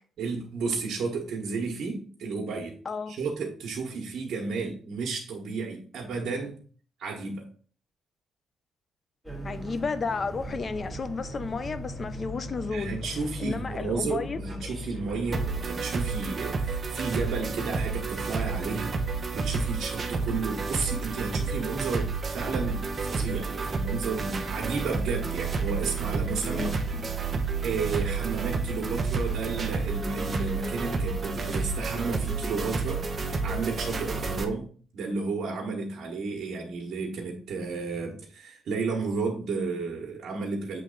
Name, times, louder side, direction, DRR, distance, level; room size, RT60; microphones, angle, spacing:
voice 1, 0.2-2.7 3.1-6.6 7.0-7.5 12.7-26.7 27.6-40.8, right 4 dB, 65° right, 1.3 m, -32 dB
sound 1, 9.2-15.7, equal, ahead, 1.9 m, -39 dB
voice 2, 9.4-13.0 13.4-14.4 26.4-27.1, left 4 dB, 40° left, 0.6 m, -32 dB
sound 2, 15.3-34.4, right 4 dB, 40° right, 0.8 m, -30 dB
7.5 x 3.2 x 3.9 m
cardioid pair, 90°, 0 cm